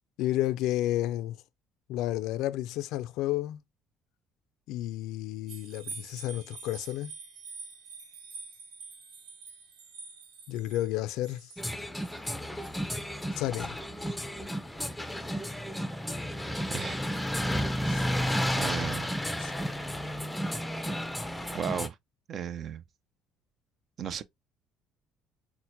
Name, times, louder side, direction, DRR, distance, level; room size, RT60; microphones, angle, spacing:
voice 1, 0.2-1.4 1.9-3.6 4.7-7.1 10.5-11.5 13.4-13.8 17.9-18.0 19.4-19.5, left 14 dB, 75° left, 0.3 m, -31 dB
sound 1, 5.5-12.8 13.3-13.4, right 5 dB, 85° right, 0.9 m, -46 dB
sound 2, 11.6-21.9, equal, 5° left, 0.5 m, -32 dB
voice 2, 16.7-17.0 18.6-19.1 21.5-22.0 22.3-22.8 24.0-24.2, right 8 dB, 50° right, 0.5 m, -35 dB
5.8 x 2.1 x 2.6 m
supercardioid pair, 85°, 0 cm